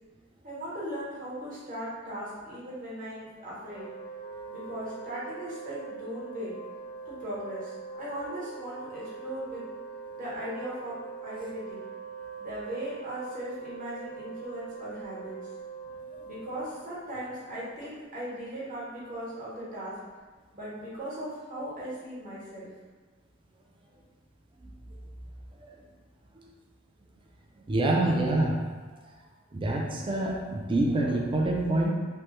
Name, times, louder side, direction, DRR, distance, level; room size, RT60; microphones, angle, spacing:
voice 1, 0.4-3.9 4.5-6.6 7.1-9.6 10.1-11.0 11.2-11.8 12.4-15.4 16.2-20.0 20.5-22.7, equal, 45° right, -8 dB, 1.1 m, -38 dB
Wind instrument woodwind instrument, 3.6-17.0, right 5 dB, 50° left, 0.5 m, -42 dB
voice 2, 27.7-28.7 29.5-31.9, right 2 dB, 25° right, -1 dB, 0.4 m, -26 dB
3.2 x 2.1 x 3.0 m, 1.4 s
head